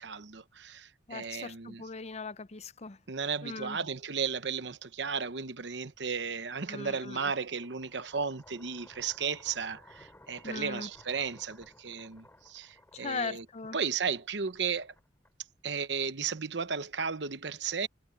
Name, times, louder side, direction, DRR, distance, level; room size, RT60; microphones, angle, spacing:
voice 1, 0.0-1.8 3.1-13.4 13.7-14.9 15.6-17.9, right 6 dB, 65° right, 1.0 m, -34 dB
voice 2, 1.1-3.0 3.4-3.8 6.7-7.3 10.4-10.9 12.9-13.8, left 4 dB, 35° left, 0.7 m, -39 dB
sound 1, 7.4-15.6, left 1 dB, 15° left, 2.9 m, -58 dB
head